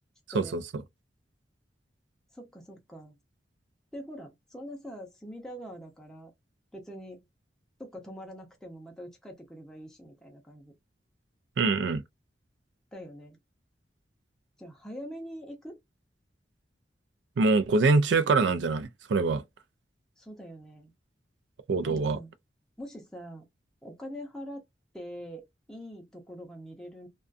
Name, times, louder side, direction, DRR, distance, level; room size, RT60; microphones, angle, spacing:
voice 1, 2.3-3.2 3.9-6.3 6.7-7.2 7.8-10.7 12.9-13.4 14.6-15.8 20.2-20.9 21.8-22.3 22.8-23.5 23.8-24.6 24.9-25.4 25.7-27.1, equal, 5° left, 0.5 m, -43 dB
voice 2, 11.6-12.0 17.4-19.4 21.7-22.2, right 3 dB, 85° right, 0.4 m, -24 dB
2.4 x 2.2 x 2.4 m
head